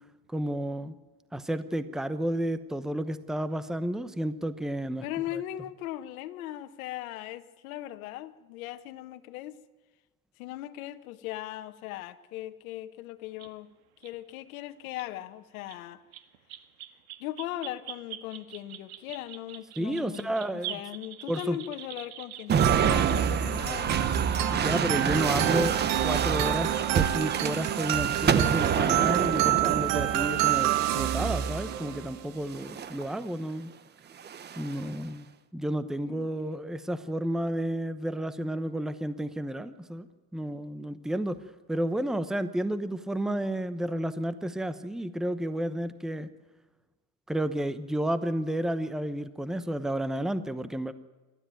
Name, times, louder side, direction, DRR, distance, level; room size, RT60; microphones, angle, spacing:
voice 1, 0.3-1.0 1.3-5.0 19.8-20.8 21.3-21.6 24.5-33.7 34.6-35.3 35.5-40.1 40.3-41.4 41.7-46.3 47.3-50.9, right 1 dB, ahead, 0.9 m, -31 dB
voice 2, 5.0-9.6 10.4-13.7 14.0-16.0 17.2-24.0 36.0-36.3, left 14 dB, 65° left, 1.5 m, -39 dB
sound 1, 13.4-13.5 14.0-14.1 14.9-15.1 15.7-15.8 16.1-23.4 24.7-24.8 26.2-26.5, right 12 dB, 70° right, 1.9 m, -44 dB
sound 2, 22.5-31.9 32.6-33.1 34.2-34.9, right 7 dB, 25° right, 1.1 m, -28 dB
sound 3, 22.6-32.3, right 12 dB, 45° right, 1.5 m, -28 dB
28.0 x 13.0 x 9.2 m
supercardioid pair, 125°, 44 cm